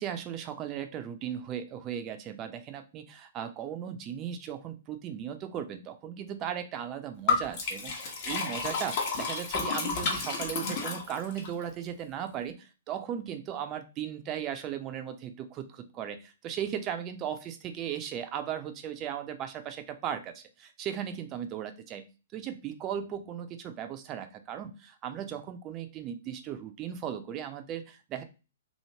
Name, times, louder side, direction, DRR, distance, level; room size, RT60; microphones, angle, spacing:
voice 1, 0.0-22.1 22.3-28.2, right 9 dB, 30° right, 8 dB, 0.5 m, -37 dB
Liquid, 7.3-11.5, left 4 dB, 45° left, 0.9 m, -31 dB
3.0 x 2.7 x 2.7 m, 0.31 s
figure-of-eight pair, 120°, 0 cm